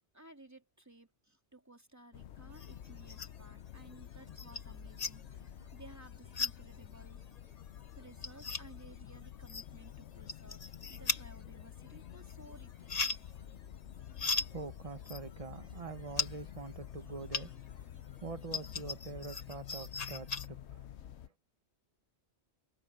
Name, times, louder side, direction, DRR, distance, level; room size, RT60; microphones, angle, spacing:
voice 1, 0.1-7.2 8.0-13.6, right 1 dB, 15° right, 3.2 m, -57 dB
sound 1, 2.1-21.3, left 10 dB, 75° left, 0.9 m, -49 dB
sound 2, 2.5-3.5 3.9-17.8 18.1-20.5, left 4 dB, 35° left, 1.2 m, -40 dB
voice 2, 13.9-21.3, right 4 dB, 30° right, 1.2 m, -46 dB
omnidirectional pair, 1.2 m